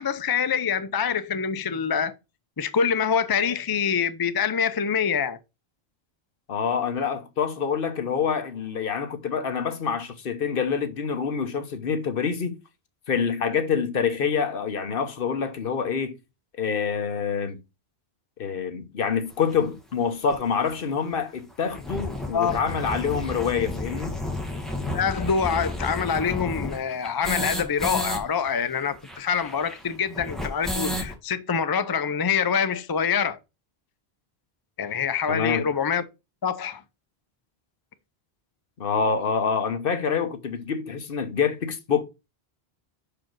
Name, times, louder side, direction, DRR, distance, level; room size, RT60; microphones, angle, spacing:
voice 1, 0.0-2.1 2.6-5.4 22.3-22.6 24.9-33.4 34.8-36.0 36.4-36.8, left 6 dB, 35° left, 0.4 m, -25 dB
voice 2, 6.5-12.6 13.1-16.2 16.6-17.6 18.4-24.2 35.3-35.7 38.8-42.0, left 6 dB, 60° left, 1.1 m, -26 dB
sound 1, 19.5-19.6 20.3-20.4 20.6-20.7 21.0-21.1 21.5-28.2 28.5-28.6 28.8-31.1, left 1 dB, ahead, 1.6 m, -32 dB
6.1 x 4.9 x 4.5 m
omnidirectional pair, 1.0 m